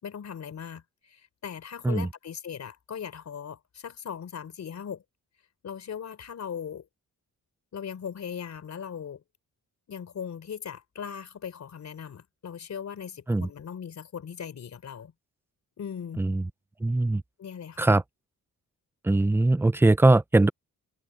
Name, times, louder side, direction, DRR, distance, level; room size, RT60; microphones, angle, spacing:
voice 1, 0.0-5.0 5.6-6.9 7.7-9.2 9.9-15.1 15.8-16.2 17.4-17.9, left 7 dB, 55° left, 3.9 m, -39 dB
voice 2, 16.8-17.2 17.8-18.0 19.0-20.5, right 2 dB, 5° right, 0.5 m, -21 dB
wide cardioid pair, 135°, 33 cm